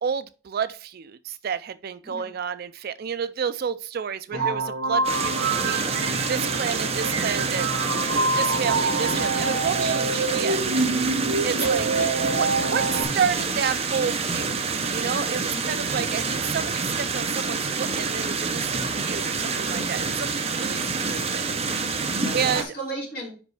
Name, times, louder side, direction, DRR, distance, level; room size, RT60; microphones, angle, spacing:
voice 1, 0.0-7.7 8.1-10.6 11.4-11.8 12.4-14.6 14.9-21.4 21.8-22.1 22.3-22.6, right 7 dB, 45° right, 0.3 m, -30 dB
voice 2, 4.3-4.6 11.6-12.2 15.4-16.2 22.2-23.3, right 1 dB, 45° left, 4.1 m, -36 dB
sound 1, 4.3-13.0, right 3 dB, 60° right, 1.0 m, -26 dB
sound 2, 5.0-22.6, right 4 dB, 30° right, 0.8 m, -27 dB
5.2 x 5.2 x 4.8 m
head